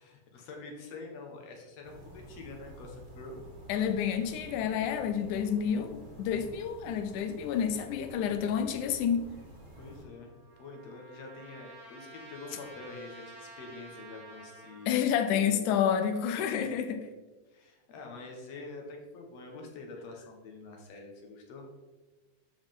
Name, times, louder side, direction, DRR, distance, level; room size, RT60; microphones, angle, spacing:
voice 1, 0.0-3.4 9.8-15.6 16.3-16.7 17.5-21.7, left 3 dB, 60° left, 2 dB, 2.3 m, -46 dB
sound 1, 1.8-10.0, equal, 35° right, 0.8 m, -50 dB
voice 2, 3.7-9.3 14.9-17.0, left 8 dB, 80° left, 7 dB, 2.2 m, -29 dB
Trumpet, 9.7-14.9, right 2 dB, 75° right, 3.5 m, -51 dB
13.0 x 4.9 x 3.7 m, 1.2 s
omnidirectional pair, 3.5 m